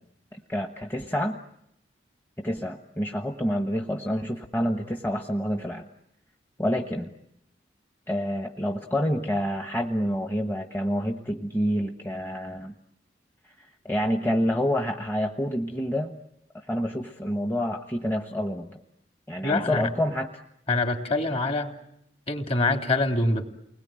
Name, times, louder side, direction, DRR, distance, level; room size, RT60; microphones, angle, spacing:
voice 1, 0.3-1.4 2.4-5.9 6.6-7.1 8.1-12.7 13.4-16.1 16.5-18.8 19.3-20.3, equal, 10° left, 3 dB, 1.2 m, -28 dB
voice 2, 19.4-19.9 20.7-21.8 22.3-23.5, left 2 dB, 35° left, 4 dB, 2.9 m, -25 dB
30.0 x 21.0 x 9.0 m, 0.80 s
head